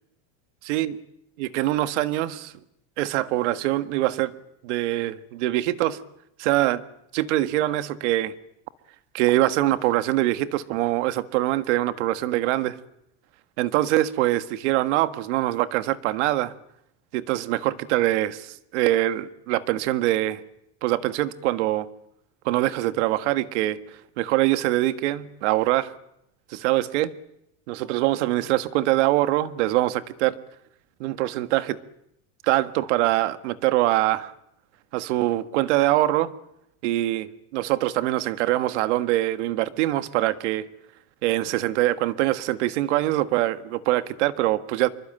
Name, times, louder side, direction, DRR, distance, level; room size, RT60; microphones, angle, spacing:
voice 1, 1.4-2.5 3.0-4.3 4.6-6.0 6.4-6.8 7.1-8.3 9.1-12.8 13.6-16.5 17.1-20.4 20.8-21.9 22.5-23.8 24.2-25.9 26.5-27.1 27.7-30.4 31.0-31.8 32.4-34.3 34.9-36.3 36.8-40.7 41.2-44.9, right 16 dB, 80° right, 12 dB, 1.7 m, -23 dB
27.0 x 23.5 x 9.0 m, 0.78 s
cardioid pair, 170°, 35 cm